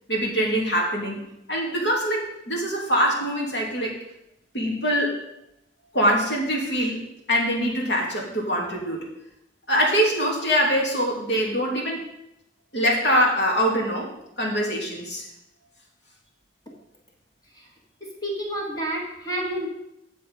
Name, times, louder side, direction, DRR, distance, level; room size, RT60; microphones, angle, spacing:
voice 1, 0.1-1.2 1.5-4.0 4.5-5.2 5.9-7.0 7.3-9.0 9.7-12.0 12.7-14.1 14.4-15.3, equal, 75° left, -2 dB, 2.8 m, -23 dB
voice 2, 18.0-19.7, right 1 dB, 20° left, -1 dB, 1.7 m, -30 dB
8.7 x 7.5 x 5.5 m, 0.85 s
head